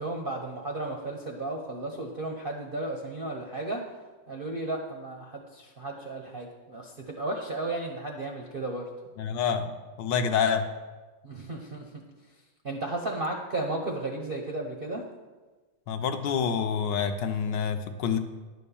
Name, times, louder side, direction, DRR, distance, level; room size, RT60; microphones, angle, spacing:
voice 1, 0.0-3.8 4.3-8.9 11.2-11.8 12.6-15.0, right 2 dB, 55° right, 1 dB, 0.6 m, -34 dB
voice 2, 9.2-10.6 15.9-18.2, left 7 dB, 75° left, 7 dB, 1.3 m, -27 dB
10.5 x 4.3 x 6.9 m, 1.3 s
omnidirectional pair, 2.0 m